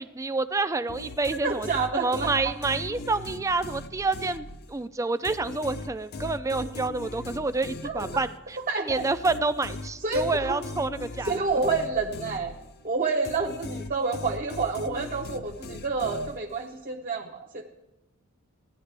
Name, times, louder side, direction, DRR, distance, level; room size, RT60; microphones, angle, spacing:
voice 1, 0.0-1.7 1.9-11.3, right 3 dB, 15° right, 12 dB, 0.3 m, -28 dB
sound 1, 0.9-4.9 5.2-12.9 13.2-16.7, left 2 dB, 45° left, 0.6 m, -39 dB
voice 2, 1.4-2.5 7.8-8.0 8.7-9.1 10.0-10.6 11.2-12.6 12.8-17.6, right 4 dB, 40° right, 1 dB, 0.7 m, -28 dB
16.5 x 10.5 x 3.3 m, 0.96 s
head